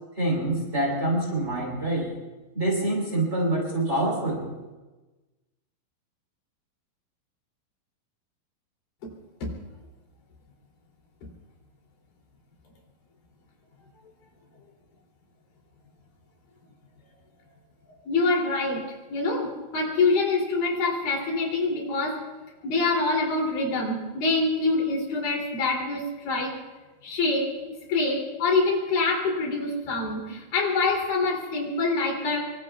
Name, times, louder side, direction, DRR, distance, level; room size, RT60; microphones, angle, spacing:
voice 1, 0.2-2.1 2.5-4.5, right 1 dB, 20° right, -1 dB, 3.8 m, -26 dB
voice 2, 18.1-18.8 19.1-22.2 22.6-26.5 27.0-27.5 27.9-32.5, left 3 dB, 70° left, -1 dB, 4.7 m, -25 dB
25.0 x 24.0 x 2.4 m, 1.2 s
omnidirectional pair, 4.2 m